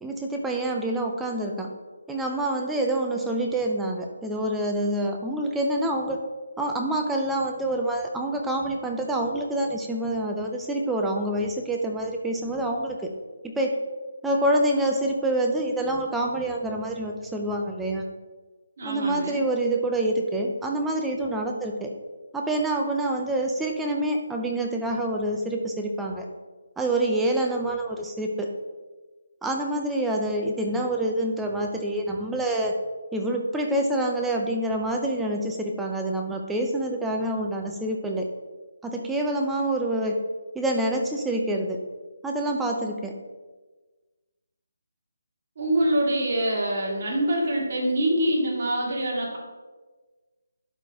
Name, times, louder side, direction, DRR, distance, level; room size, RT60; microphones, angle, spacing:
voice 1, 0.0-1.7 2.1-6.2 6.6-13.1 13.4-13.8 14.2-18.0 18.8-21.9 22.3-26.3 26.8-28.5 29.4-32.8 33.1-38.3 38.8-40.2 40.5-41.8 42.2-43.1, right 1 dB, 5° right, 1 dB, 0.5 m, -26 dB
voice 2, 18.8-19.4 45.6-49.4, right 1 dB, 45° right, -3 dB, 2.1 m, -25 dB
12.0 x 4.0 x 3.5 m, 1.3 s
hypercardioid pair, 165°, 0 cm